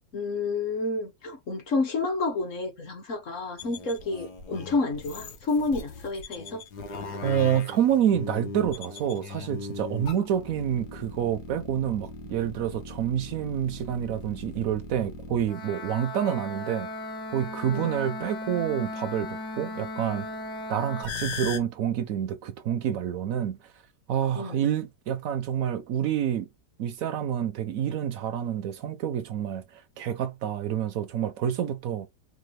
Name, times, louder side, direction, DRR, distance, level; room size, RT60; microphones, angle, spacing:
voice 1, 0.1-6.6 17.7-18.0 24.3-24.6, left 3 dB, 55° left, 1.0 m, -30 dB
sound 1, 3.6-21.6, left 3 dB, 70° left, 1.4 m, -38 dB
voice 2, 7.2-16.9 17.3-20.3 20.7-23.7 24.1-26.5 26.8-32.1, right 9 dB, 70° right, 0.8 m, -28 dB
4.9 x 2.2 x 3.1 m
omnidirectional pair, 1.8 m